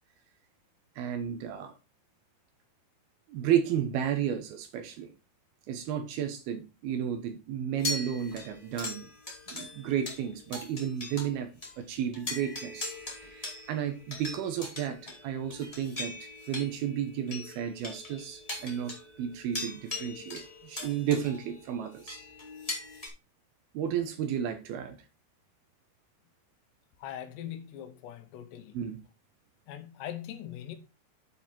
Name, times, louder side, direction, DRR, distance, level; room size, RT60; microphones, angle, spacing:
voice 1, 1.0-1.7 3.3-5.1 5.7-9.1 9.5-16.2 16.5-22.2 23.7-25.0 28.7-29.0, right 9 dB, 70° right, 2.7 m, -32 dB
sound 1, 7.8-11.4 11.6-11.8 12.1-23.1, left 2 dB, 15° left, 1.5 m, -41 dB
voice 2, 27.0-28.8 29.7-30.8, left 11 dB, 80° left, 3.1 m, -41 dB
10.0 x 4.8 x 4.4 m
omnidirectional pair, 4.9 m